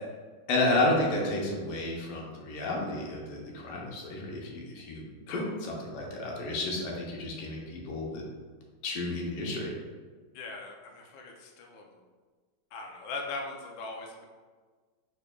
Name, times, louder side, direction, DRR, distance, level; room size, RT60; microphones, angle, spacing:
voice 1, 0.5-5.4 5.8-8.3 8.8-9.7, left 2 dB, 90° left, -2 dB, 1.8 m, -31 dB
voice 2, 10.3-11.9 12.7-14.2, left 3 dB, 70° left, 1 dB, 1.3 m, -40 dB
5.0 x 4.7 x 2.2 m, 1.4 s
omnidirectional pair, 2.4 m